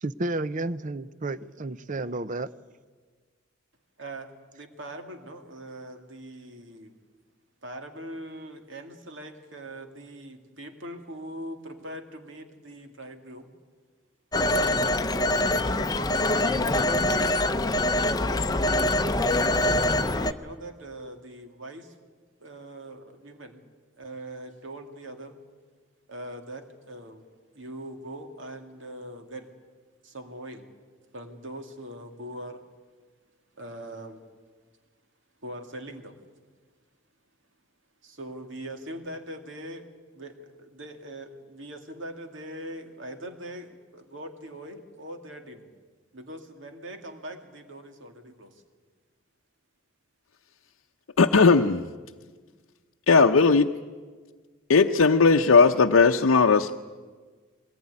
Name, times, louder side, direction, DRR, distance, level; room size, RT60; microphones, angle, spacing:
voice 1, 0.0-2.5, right 2 dB, 40° right, 0.6 m, -31 dB
voice 2, 4.0-7.0 7.6-13.5 14.5-16.8 18.1-19.1 19.5-21.9 22.4-23.6 24.0-25.4 26.1-27.2 27.5-29.5 30.0-30.7 31.1-32.6 33.6-34.3 35.4-36.2 38.0-39.9 40.1-45.7 46.1-48.6, right 1 dB, 65° right, 2.4 m, -41 dB
Telephone, 14.3-20.3, left 1 dB, 20° left, 0.7 m, -24 dB
voice 3, 51.2-51.8 53.1-53.7 54.7-56.8, left 4 dB, 85° left, 0.7 m, -18 dB
21.5 x 19.0 x 9.7 m
head